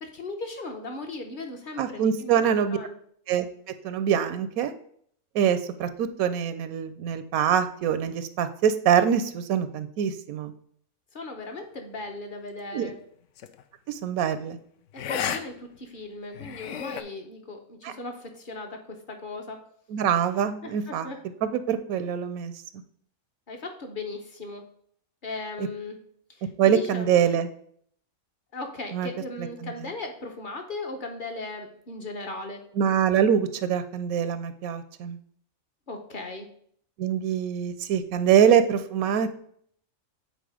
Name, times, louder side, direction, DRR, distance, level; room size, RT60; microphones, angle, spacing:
voice 1, 0.0-2.9 11.1-13.0 15.1-19.6 20.6-21.2 23.5-24.6 25.2-26.0 26.4-27.3 28.5-32.6 35.9-36.5, left 2 dB, 40° left, 4 dB, 1.0 m, -37 dB
voice 2, 1.8-2.8 3.3-3.5 3.8-4.7 5.3-10.5 12.7-12.9 13.9-14.6 17.8-17.9 19.9-21.1 21.4-22.5 25.6-25.7 26.6-27.5 28.9-29.1 29.6-29.7 32.8-35.2 37.0-39.4, right 8 dB, 85° right, 11 dB, 1.0 m, -24 dB
sound 1, 13.4-13.6 14.9-15.4 15.7-15.8 16.3-17.0, left 9 dB, 70° left, 0.9 m, -32 dB
8.0 x 4.1 x 4.8 m, 0.63 s
omnidirectional pair, 1.5 m